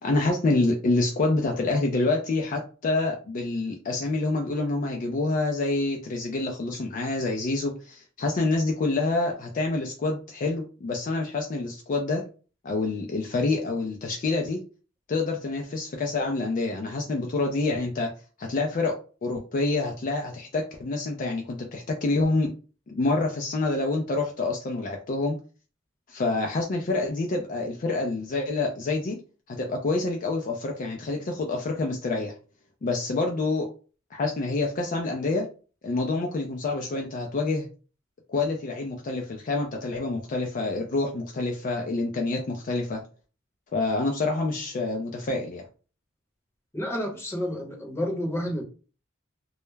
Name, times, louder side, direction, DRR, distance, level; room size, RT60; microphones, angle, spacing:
voice 1, 0.0-12.2 12.6-14.6 15.1-18.1 18.4-18.9 19.2-22.5 22.9-25.4 26.1-29.2 29.5-32.3 32.8-33.7 34.1-35.5 35.8-37.7 38.3-43.0 43.7-45.6, left 3 dB, 40° left, 0.4 m, -27 dB
voice 2, 46.7-48.6, equal, 15° left, 0.7 m, -30 dB
2.2 x 2.0 x 3.1 m
head